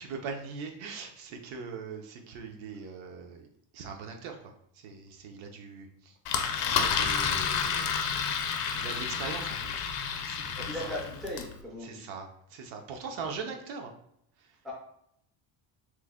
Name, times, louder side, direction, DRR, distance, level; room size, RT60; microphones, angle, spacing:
voice 1, 0.0-3.5 3.7-6.2 6.6-7.9 8.7-9.9 10.1-10.8 11.8-13.9 14.4-14.5, right 5 dB, 80° right, 4 dB, 0.7 m, -41 dB
Engine, 6.3-11.5, left 7 dB, 60° left, 0.5 m, -30 dB
voice 2, 10.6-12.1 14.6-14.7, left 1 dB, ahead, -3 dB, 0.3 m, -38 dB
3.0 x 2.1 x 3.5 m, 0.72 s
cardioid pair, 180°, 46 cm